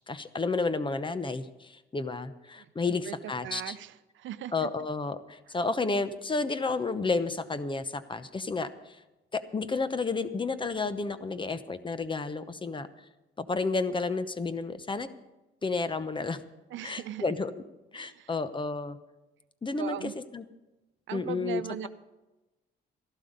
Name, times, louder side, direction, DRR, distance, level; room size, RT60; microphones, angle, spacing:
voice 1, 0.1-3.8 4.5-9.0 9.3-12.9 13.4-15.1 15.6-16.4 16.8-17.5 17.9-19.0 19.6-20.4 21.1-21.9, left 3 dB, 25° left, 12 dB, 0.8 m, -31 dB
voice 2, 3.4-4.7 16.7-17.2 17.9-18.3 19.8-20.1 21.1-21.9, right 11 dB, 75° right, 13 dB, 0.6 m, -39 dB
13.5 x 12.0 x 5.2 m, 1.0 s
cardioid pair, 90°, 20 cm